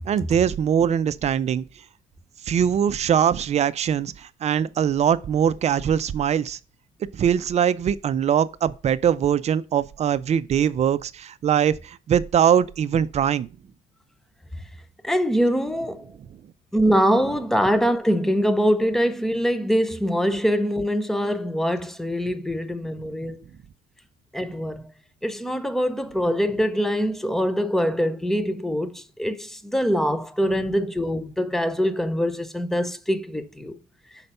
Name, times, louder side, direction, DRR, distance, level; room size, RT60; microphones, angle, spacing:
voice 1, 0.1-1.6 2.5-6.6 7.1-13.5, right 8 dB, 40° right, 0.5 m, -22 dB
voice 2, 15.0-16.1 16.7-23.5 24.3-24.8 25.2-33.8, equal, ahead, 0.6 m, -23 dB
5.6 x 4.5 x 5.3 m
cardioid pair, 110°, 17 cm